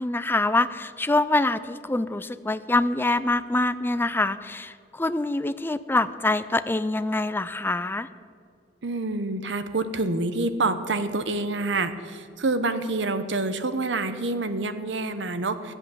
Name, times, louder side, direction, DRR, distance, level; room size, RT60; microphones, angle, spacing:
voice 1, 0.0-8.1, left 2 dB, 10° left, 13 dB, 0.4 m, -25 dB
voice 2, 8.8-15.7, right 2 dB, 75° right, 11 dB, 0.9 m, -27 dB
14.5 x 8.0 x 7.3 m, 2.2 s
head